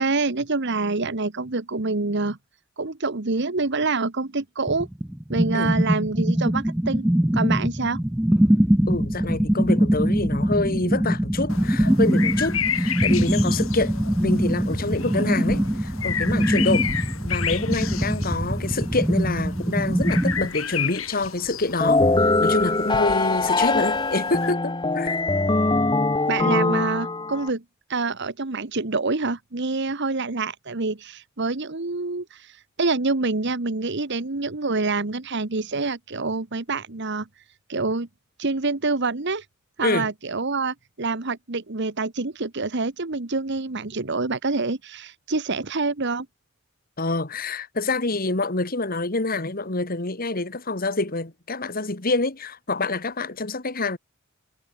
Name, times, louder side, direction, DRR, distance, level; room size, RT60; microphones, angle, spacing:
voice 1, 0.0-2.4 2.8-4.9 5.3-8.0 26.3-27.6 27.9-37.3 37.7-38.1 38.4-39.4 39.8-46.3, right 3 dB, 60° right, 1.3 m, -26 dB
sound 1, 4.7-20.5, equal, 5° right, 0.5 m, -23 dB
voice 2, 8.9-25.2 39.8-40.1 47.0-54.0, left 2 dB, 45° left, 2.2 m, -27 dB
sound 2, 11.5-24.5, left 7 dB, 90° left, 6.4 m, -32 dB
sound 3, 21.8-27.5, left 3 dB, 20° left, 1.2 m, -22 dB
head